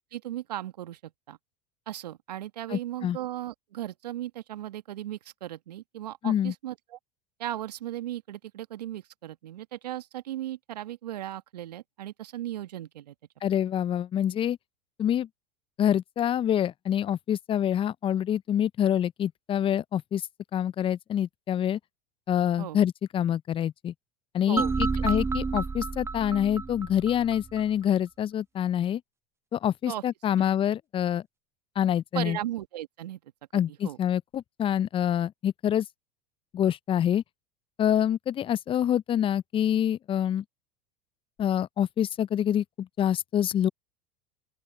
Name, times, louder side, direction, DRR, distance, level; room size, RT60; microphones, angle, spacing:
voice 1, 0.0-1.4 1.9-7.0 7.4-13.1 22.6-22.8 24.5-25.0 29.9-30.0 30.4-30.5 32.1-33.2 33.5-34.0, right 13 dB, 80° right, 1.6 m, -37 dB
voice 2, 2.7-3.2 6.2-6.5 13.4-14.6 15.0-15.3 15.8-20.2 20.5-21.8 22.3-23.9 24.3-29.0 29.5-31.2 31.8-32.4 33.5-35.9 36.5-37.2 37.8-40.4 41.4-43.7, left 10 dB, 25° left, 0.4 m, -26 dB
sound 1, 24.6-27.6, right 4 dB, 15° right, 0.7 m, -30 dB
open air
hypercardioid pair, 85°, 21 cm